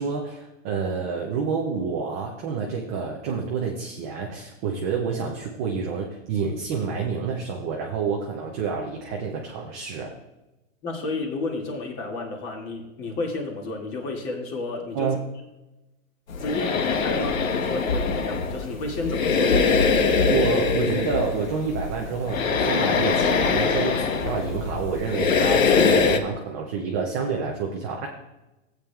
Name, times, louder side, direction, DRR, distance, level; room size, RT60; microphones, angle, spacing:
voice 1, 0.0-10.1 14.9-15.2 20.3-28.1, right 5 dB, 15° right, -1 dB, 0.3 m, -28 dB
voice 2, 10.8-15.1 16.4-19.6, left 2 dB, 35° left, 1 dB, 2.1 m, -31 dB
sound 1, 16.3-26.2, left 5 dB, 85° left, 1.1 m, -23 dB
14.5 x 8.7 x 2.3 m, 1.0 s
hypercardioid pair, 145°, 39 cm